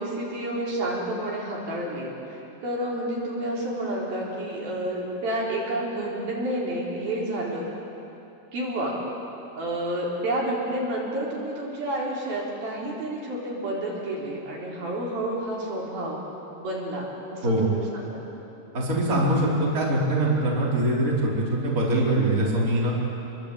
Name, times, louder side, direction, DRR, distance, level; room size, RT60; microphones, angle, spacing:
voice 1, 0.0-7.7 8.5-9.0 9.6-16.2 16.6-18.2, right 1 dB, 55° right, -4 dB, 5.8 m, -30 dB
voice 2, 18.7-22.9, right 1 dB, 20° right, -5 dB, 4.6 m, -23 dB
28.0 x 23.0 x 8.6 m, 2.9 s
omnidirectional pair, 5.1 m